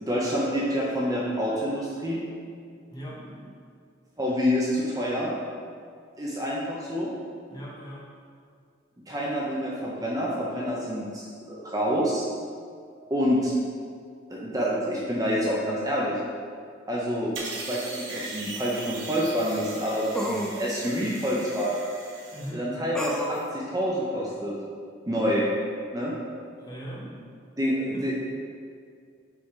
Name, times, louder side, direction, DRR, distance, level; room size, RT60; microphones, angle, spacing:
voice 1, 0.0-2.2 4.2-5.3 6.2-7.1 9.1-12.3 13.1-13.5 14.3-16.2 16.9-21.8 22.5-24.5 25.1-25.4 25.9-26.1 27.0-27.1 27.6-28.1, equal, 20° right, -5 dB, 0.8 m, -27 dB
voice 2, 2.9-3.2 7.5-8.0 22.3-22.6 26.6-27.0 27.7-28.1, equal, 20° left, -5 dB, 1.1 m, -39 dB
sound 1, 17.3-22.5, right 3 dB, 90° right, 1.3 m, -39 dB
sound 2, 17.8-17.9 20.1-20.6 22.9-23.5, equal, 5° left, 0.4 m, -30 dB
5.9 x 4.2 x 4.6 m, 2.2 s
head